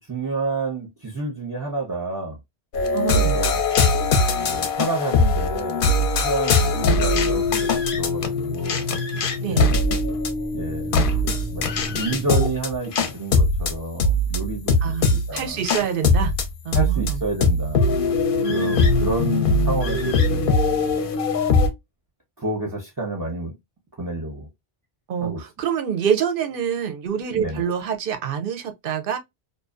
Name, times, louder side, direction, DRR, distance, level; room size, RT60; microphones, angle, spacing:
voice 1, 0.1-2.4 3.1-3.6 4.4-9.7 10.5-11.0 11.5-14.8 15.1-15.6 16.7-18.0 18.5-20.6 21.4-21.6 22.4-23.5 24.0-24.5 25.2-25.4 27.3-27.6, right 2 dB, 20° right, 0.6 m, -30 dB
sound 1, 2.7-21.7, left 2 dB, 60° left, 0.7 m, -21 dB
voice 2, 2.9-3.4 9.4-9.7 14.8-16.3 16.6-17.2 18.4-18.8 25.1-29.2, right 8 dB, 60° right, 0.7 m, -26 dB
2.5 x 2.1 x 2.3 m
omnidirectional pair, 1.1 m